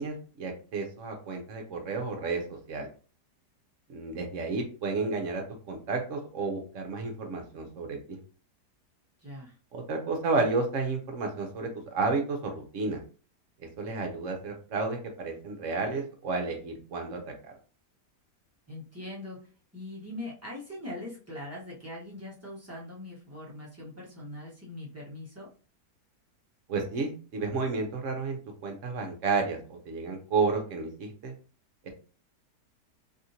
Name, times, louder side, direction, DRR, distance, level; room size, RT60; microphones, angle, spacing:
voice 1, 0.0-2.9 3.9-8.2 9.7-13.0 13.6-17.5 26.7-31.3 31.8-31.9, right 4 dB, 60° right, 3 dB, 0.9 m, -32 dB
voice 2, 9.2-9.5 18.7-19.4 19.7-25.5, left 1 dB, 10° right, -7 dB, 0.8 m, -41 dB
3.5 x 2.5 x 2.8 m, 0.38 s
omnidirectional pair, 1.8 m